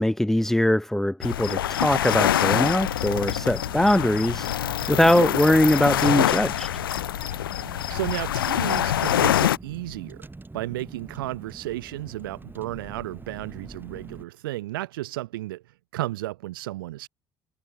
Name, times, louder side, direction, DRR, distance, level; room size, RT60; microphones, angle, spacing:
voice 1, 0.0-4.5 4.9-6.7, left 1 dB, 5° left, 0.3 m, -21 dB
sound 1, 1.2-9.6, left 12 dB, 85° left, 0.5 m, -25 dB
Car, 1.6-14.2, right 3 dB, 15° right, 3.2 m, -44 dB
voice 2, 7.9-10.2 10.5-15.6 15.9-17.1, right 16 dB, 80° right, 0.8 m, -33 dB
figure-of-eight pair, 50°, 12 cm